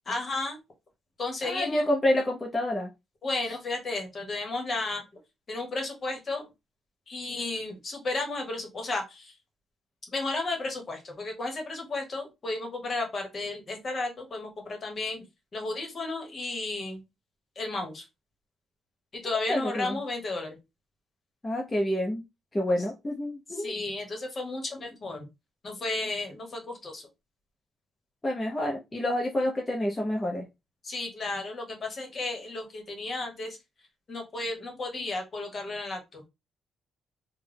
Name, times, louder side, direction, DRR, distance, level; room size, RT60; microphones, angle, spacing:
voice 1, 0.1-0.6 1.2-1.8 3.2-5.0 5.5-6.5 7.1-9.3 10.1-15.2 15.5-17.0 17.6-18.0 19.1-20.6 23.6-25.2 25.6-27.0 30.8-33.6 34.1-36.2, left 2 dB, 40° left, 3 dB, 1.3 m, -33 dB
voice 2, 1.4-2.9 19.2-20.0 21.4-22.2 22.5-23.7 28.2-30.5, left 1 dB, 20° left, -2 dB, 0.8 m, -28 dB
3.3 x 2.2 x 3.4 m, 0.23 s
cardioid pair, 90°, 0 cm